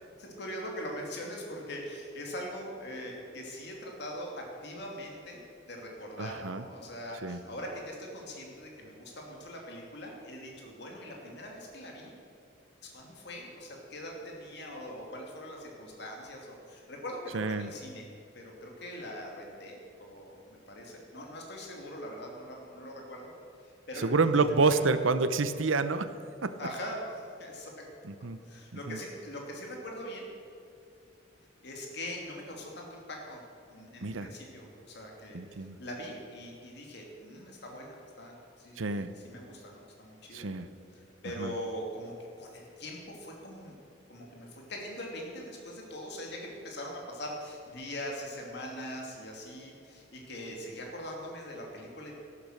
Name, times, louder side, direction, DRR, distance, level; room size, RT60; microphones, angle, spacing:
voice 1, 0.2-12.1 12.8-18.0 18.3-23.3 23.6-24.1 24.7-24.9 26.6-27.9 28.4-30.3 31.6-33.4 33.7-40.5 40.9-43.7 44.1-52.1, equal, 60° left, 0 dB, 2.7 m, -42 dB
voice 2, 6.2-6.6 7.2-7.4 17.3-17.7 24.0-26.1 26.4-26.5 28.1-28.4 28.9-29.0 34.0-34.3 35.3-35.8 38.8-39.1 40.3-40.7 41.4-41.5, right 4 dB, 85° right, 11 dB, 0.8 m, -28 dB
13.5 x 12.0 x 6.5 m, 2.6 s
head